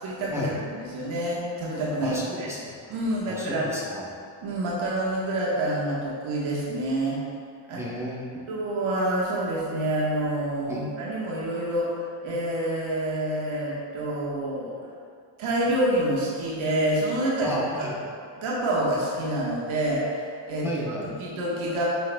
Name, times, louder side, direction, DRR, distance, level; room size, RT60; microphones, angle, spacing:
voice 1, 0.0-2.5 2.9-3.7 4.4-7.2 7.7-7.8 8.5-14.7 15.4-17.9 18.4-20.1 20.5-20.7 21.2-21.8, right 1 dB, 80° right, -5 dB, 1.5 m, -27 dB
voice 2, 2.0-2.6 3.3-4.0 7.8-8.4 10.7-10.9 17.4-18.0 20.6-21.1, equal, 5° right, -6 dB, 1.0 m, -33 dB
9.4 x 5.8 x 2.3 m, 2.3 s
cardioid pair, 115°, 48 cm